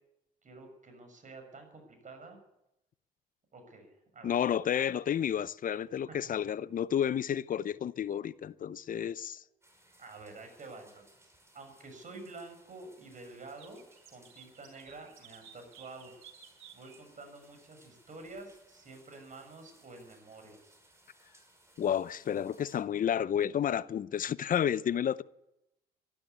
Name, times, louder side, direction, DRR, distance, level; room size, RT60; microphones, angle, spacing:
voice 1, 0.4-2.4 3.5-4.4 6.1-6.2 10.0-11.3 11.5-13.8 14.1-16.1 16.7-20.7, right 3 dB, 40° right, 6.6 m, -49 dB
voice 2, 4.2-9.4 21.8-25.2, left 9 dB, 45° left, 0.7 m, -31 dB
sound 1, 9.6-22.8, right 1 dB, 15° right, 5.6 m, -64 dB
sound 2, 13.6-17.0 17.6-17.7 18.1-18.2 18.5-18.6, right 9 dB, 75° right, 4.6 m, -55 dB
13.5 x 12.0 x 8.3 m
supercardioid pair, 65°, 20 cm